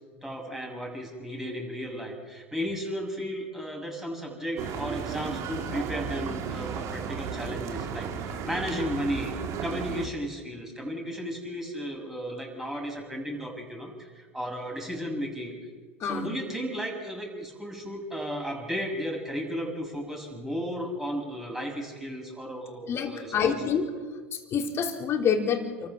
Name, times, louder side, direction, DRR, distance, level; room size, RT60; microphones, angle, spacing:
voice 1, 0.2-9.3 9.6-15.5 16.1-23.6, equal, 5° right, 0 dB, 7.2 m, -34 dB
sound 1, 4.6-10.1, right 7 dB, 50° right, 2.6 m, -34 dB
voice 2, 16.0-16.4 22.9-23.9 24.3-25.9, left 7 dB, 40° left, 3 dB, 3.9 m, -27 dB
29.0 x 14.0 x 7.2 m, 1.4 s
hypercardioid pair, 85°, 7 cm